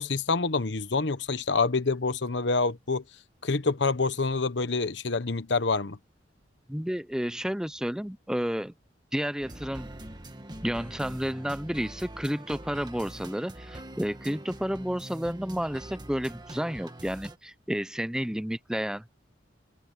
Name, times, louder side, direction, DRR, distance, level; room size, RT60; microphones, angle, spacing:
voice 1, 0.0-3.0 3.4-6.0, left 3 dB, 70° left, 1.1 m, -27 dB
voice 2, 6.7-8.7 9.1-9.9 10.6-19.0, equal, 5° right, 0.6 m, -31 dB
sound 1, 9.4-17.4, right 1 dB, 25° right, 1.7 m, -43 dB
head